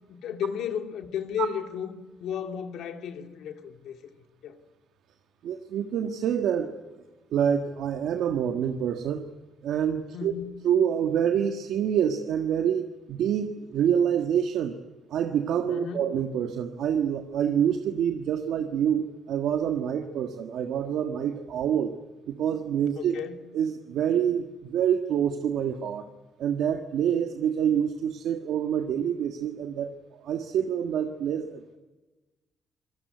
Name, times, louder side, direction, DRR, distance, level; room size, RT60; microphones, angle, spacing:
voice 1, 0.1-4.0 4.4-4.5 10.1-10.6 15.7-16.1 23.0-23.4, left 8 dB, 80° left, 6 dB, 2.4 m, -34 dB
voice 2, 5.4-7.0 7.3-9.2 9.6-10.3 10.6-14.8 15.1-21.9 22.3-23.1 23.5-26.0 26.4-29.9 30.2-31.8, right 8 dB, 80° right, 6 dB, 1.5 m, -27 dB
27.0 x 18.5 x 9.5 m, 1.2 s
cardioid pair, 90°, 0 cm